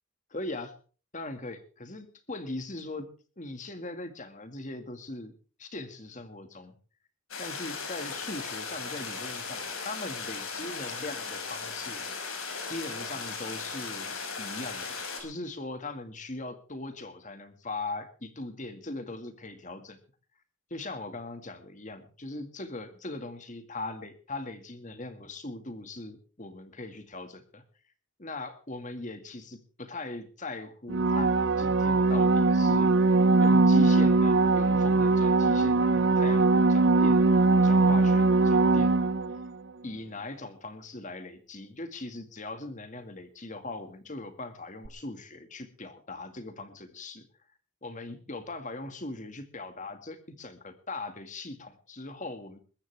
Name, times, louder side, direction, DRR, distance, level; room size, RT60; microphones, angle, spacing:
voice 1, 0.3-0.7 1.1-3.1 3.4-5.3 5.6-6.8 7.4-12.0 12.7-20.0 20.7-27.6 28.2-32.9 33.4-39.2 39.8-47.3 47.8-52.6, left 2 dB, 35° left, 8 dB, 2.0 m, -40 dB
sound 1, 7.3-15.2, left 5 dB, 75° left, 5.3 m, -37 dB
sound 2, 30.9-39.5 44.9-45.0, right 3 dB, 55° right, 0.8 m, -21 dB
21.0 x 14.0 x 3.5 m, 0.39 s
head